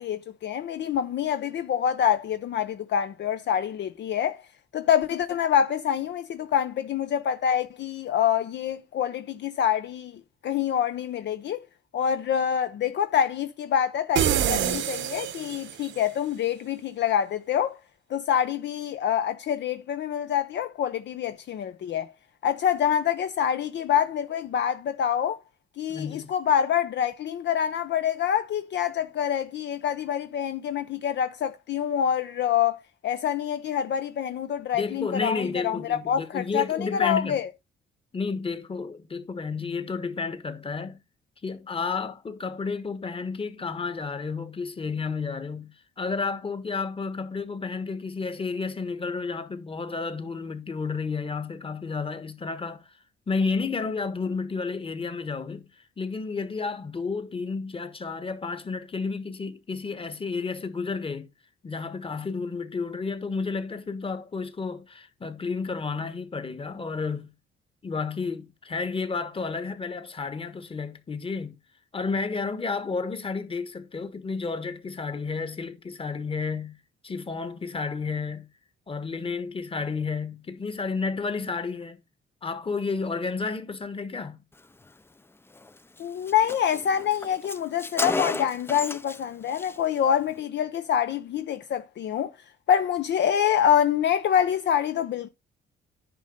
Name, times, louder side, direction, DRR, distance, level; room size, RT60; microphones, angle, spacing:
voice 1, 0.0-4.4 4.7-11.6 11.9-17.7 18.1-22.1 22.4-25.4 25.8-37.5 86.0-92.3 92.7-95.3, left 9 dB, 60° left, 0.7 m, -26 dB
sound 1, 14.2-16.0, right 10 dB, 70° right, 0.9 m, -26 dB
voice 2, 25.9-26.3 34.7-37.4 38.1-41.0 41.4-53.0 53.3-55.6 56.0-61.3 61.6-67.3 67.8-71.6 71.9-76.8 77.0-78.5 78.9-82.0 82.4-84.4, left 4 dB, 25° left, 1.5 m, -31 dB
Car, 85.6-85.7 86.0-86.1 86.3-89.2 89.5-89.8, left 2 dB, 10° left, 0.5 m, -33 dB
10.0 x 5.2 x 3.9 m
cardioid pair, 90°, 20 cm